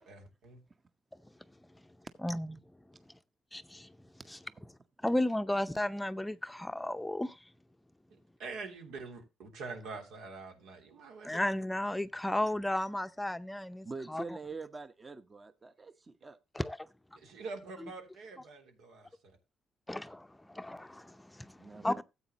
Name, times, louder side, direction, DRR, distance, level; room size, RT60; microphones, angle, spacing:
voice 1, 0.1-0.6 8.1-11.4 17.2-19.3, right 4 dB, 85° right, 3.2 m, -45 dB
voice 2, 2.2-2.6 3.5-3.9 4.3-4.4 5.0-7.4 11.2-14.4 16.5-16.9 19.9-22.0, left 1 dB, 10° left, 0.6 m, -34 dB
voice 3, 13.8-16.4 21.6-22.0, right 3 dB, 30° right, 0.9 m, -44 dB
14.0 x 8.1 x 2.9 m
cardioid pair, 90°, 0 cm